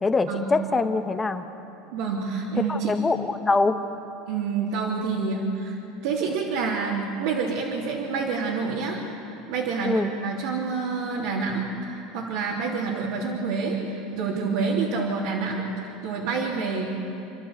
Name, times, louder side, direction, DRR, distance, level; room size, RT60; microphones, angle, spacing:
voice 1, 0.0-1.5 2.7-3.8 9.8-10.1, left 3 dB, 15° left, 8 dB, 1.1 m, -24 dB
voice 2, 1.9-3.0 4.3-5.7 6.0-16.9, right 4 dB, 75° right, -6 dB, 3.3 m, -28 dB
29.0 x 12.0 x 8.4 m, 2.9 s
supercardioid pair, 135°, 0 cm